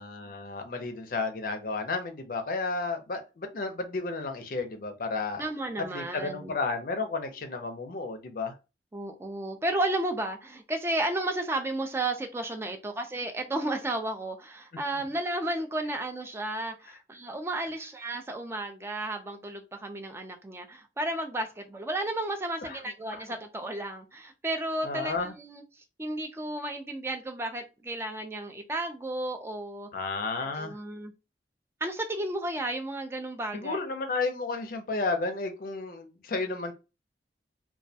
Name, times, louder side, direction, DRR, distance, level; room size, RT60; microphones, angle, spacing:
voice 1, 0.0-5.4 5.9-8.5 22.6-22.8 23.1-23.2 24.8-25.3 29.9-30.7 33.5-36.7, left 3 dB, 50° left, 0.5 m, -32 dB
voice 2, 5.4-6.5 8.9-29.9 30.4-31.1 31.8-33.8, right 1 dB, 15° right, 0.3 m, -33 dB
2.2 x 2.1 x 2.6 m
head